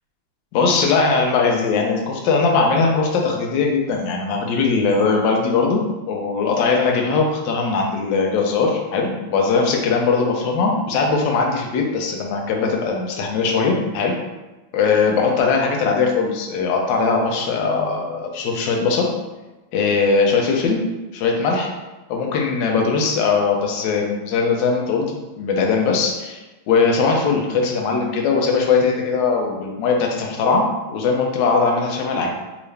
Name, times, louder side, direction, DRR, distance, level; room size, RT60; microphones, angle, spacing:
voice 1, 0.5-5.8 6.1-14.2 14.7-19.1 19.7-20.8 21.1-21.7 22.1-32.3, left 4 dB, 70° left, 1 dB, 1.3 m, -20 dB
3.7 x 3.0 x 3.2 m, 1.1 s
omnidirectional pair, 2.3 m